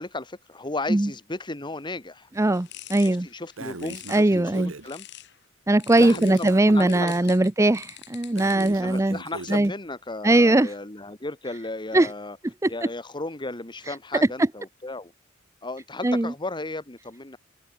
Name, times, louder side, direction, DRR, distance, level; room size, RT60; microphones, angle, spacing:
voice 1, 0.0-2.3 3.0-4.1 4.3-5.1 6.0-7.5 8.7-12.4 12.7-15.1 15.6-17.4, left 2 dB, 25° left, 1.8 m, -35 dB
sound 1, 2.3-5.4 5.8-9.0, left 13 dB, 60° left, 3.9 m, -45 dB
voice 2, 2.4-3.3 4.1-4.7 5.7-9.2 9.5-9.7 10.2-10.7 11.9-12.1 12.6-12.7 13.9-14.0 14.4-14.5 16.0-16.3, right 1 dB, 15° right, 0.6 m, -20 dB
Breathing, 3.6-4.9 5.9-7.3 8.3-9.7, right 3 dB, 90° right, 1.6 m, -39 dB
head